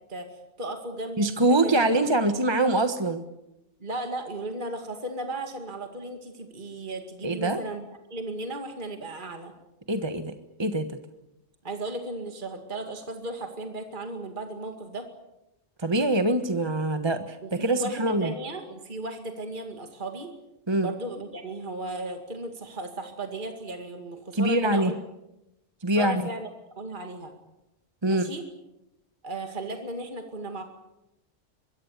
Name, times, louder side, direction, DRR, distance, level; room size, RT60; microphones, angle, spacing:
voice 1, 0.1-1.7 3.8-9.5 11.6-15.1 17.4-20.3 20.8-25.0 26.0-26.5 26.8-27.3 28.0-28.4 29.2-30.6, right 2 dB, 40° right, 5 dB, 2.4 m, -35 dB
voice 2, 1.2-3.2 7.2-7.6 9.9-10.3 10.6-11.0 15.8-18.3 20.7-20.9 24.3-24.9 25.8-26.2 28.0-28.3, right 2 dB, 20° right, 8 dB, 1.3 m, -24 dB
24.5 x 22.0 x 8.3 m, 0.91 s
omnidirectional pair, 1.3 m